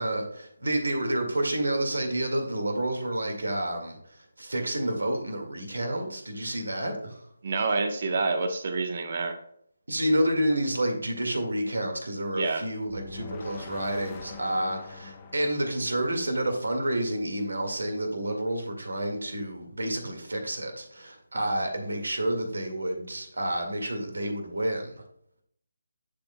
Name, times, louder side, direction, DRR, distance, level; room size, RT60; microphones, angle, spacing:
voice 1, 0.0-4.0 4.4-7.2 9.9-25.0, right 1 dB, 75° right, 4 dB, 1.9 m, -29 dB
voice 2, 7.4-9.4 12.3-12.7, right 3 dB, 50° right, 6 dB, 1.0 m, -28 dB
sound 1, 12.9-17.0, left 5 dB, 20° left, 0.9 m, -44 dB
11.5 x 4.4 x 2.2 m, 0.69 s
figure-of-eight pair, 150°, 0 cm